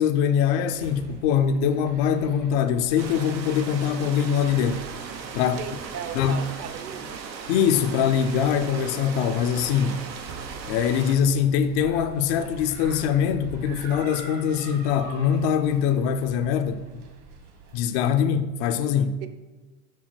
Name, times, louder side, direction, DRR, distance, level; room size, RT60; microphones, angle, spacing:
voice 1, 0.0-4.8 5.3-5.6 6.1-6.4 7.5-10.0 10.7-17.0 17.7-19.2, left 8 dB, 30° left, 0.4 m, -23 dB
sound 1, 0.7-17.8, right 3 dB, 55° right, 2.0 m, -45 dB
sound 2, 3.0-11.2, right 6 dB, 90° right, 1.2 m, -38 dB
voice 2, 5.6-7.2 19.2-19.3, right 8 dB, 30° right, 0.7 m, -37 dB
6.5 x 5.6 x 6.2 m
hypercardioid pair, 125°, 49 cm